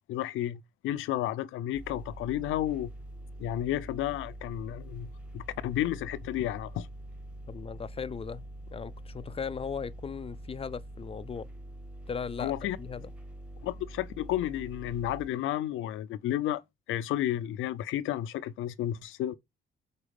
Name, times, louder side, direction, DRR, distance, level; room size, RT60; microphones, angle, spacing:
voice 1, 0.1-2.9 3.4-6.9 12.4-12.8 13.6-16.6 16.9-19.3, left 12 dB, 85° left, 0.6 m, -32 dB
sound 1, 1.7-15.3, right 1 dB, 5° right, 1.1 m, -45 dB
voice 2, 7.5-11.5 12.1-13.1, left 6 dB, 30° left, 0.4 m, -38 dB
4.9 x 4.0 x 5.2 m
cardioid pair, 90°, 20 cm